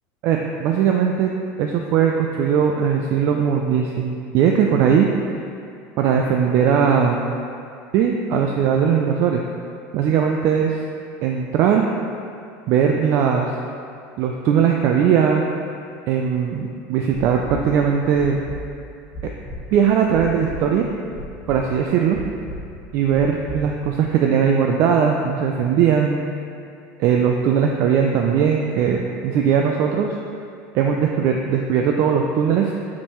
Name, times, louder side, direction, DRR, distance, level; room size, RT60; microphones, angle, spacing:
voice 1, 0.2-1.3 1.6-5.1 6.0-7.2 7.9-9.4 9.9-10.8 11.2-11.8 12.7-13.5 14.2-15.4 16.1-18.4 19.7-20.9 21.5-22.2 22.9-26.2 27.0-30.2 30.7-32.7, right 7 dB, 40° right, 1 dB, 0.3 m, -19 dB
sound 1, 17.1-17.6 18.1-18.6 19.1-19.6 20.1-20.6 21.1-21.6 22.1-22.6 23.1-23.6 24.1-24.2, equal, 20° left, 1.1 m, -34 dB
6.4 x 5.9 x 3.0 m, 2.5 s
cardioid pair, 175°, 7 cm